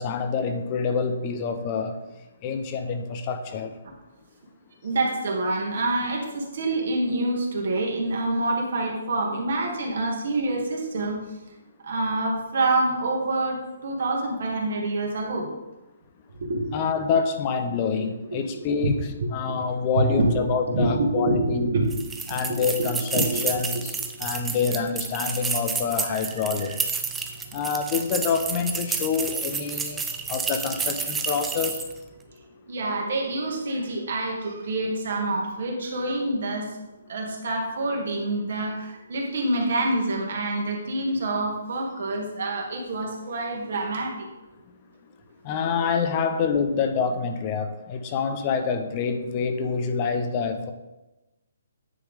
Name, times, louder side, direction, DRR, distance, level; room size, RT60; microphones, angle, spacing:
voice 1, 0.0-1.9 2.4-3.7 16.7-21.7 22.3-23.9 24.2-26.8 27.5-30.0 30.3-31.8 45.4-50.7, left 5 dB, 30° left, 7 dB, 0.7 m, -26 dB
voice 2, 4.8-11.2 11.8-15.5 16.4-16.7 18.3-18.9 19.2-21.9 22.3-22.9 23.1-23.6 24.2-24.3 26.1-26.2 26.6-26.7 32.7-36.8 37.1-44.3, right 2 dB, 60° right, 0 dB, 2.0 m, -27 dB
sound 1, 21.9-32.0, right 5 dB, 10° right, 0.6 m, -30 dB
9.7 x 3.5 x 4.9 m, 1.0 s
hypercardioid pair, 150°, 0 cm